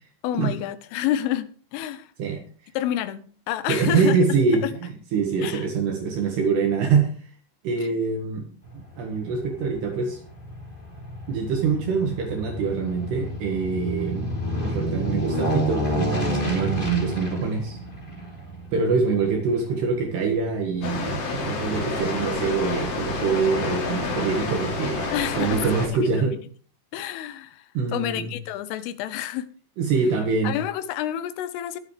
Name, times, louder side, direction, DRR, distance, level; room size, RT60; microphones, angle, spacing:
voice 1, 0.2-2.1 2.8-4.2 4.6-4.7 5.4-5.7 25.1-25.8 26.3-26.4 26.9-27.7 27.9-29.5 30.4-31.8, left 12 dB, 85° left, 3.4 m, -29 dB
voice 2, 3.7-7.1 7.6-8.5 8.7-10.2 11.3-14.3 14.6-17.8 18.7-26.4 27.7-28.3 29.8-30.6, right 5 dB, 65° right, 3.3 m, -24 dB
Aircraft, 8.6-21.2 21.6-21.7, equal, 15° left, 1.8 m, -30 dB
Water, 20.8-25.9, left 3 dB, 50° left, 4.3 m, -29 dB
21.0 x 8.0 x 3.3 m
omnidirectional pair, 5.7 m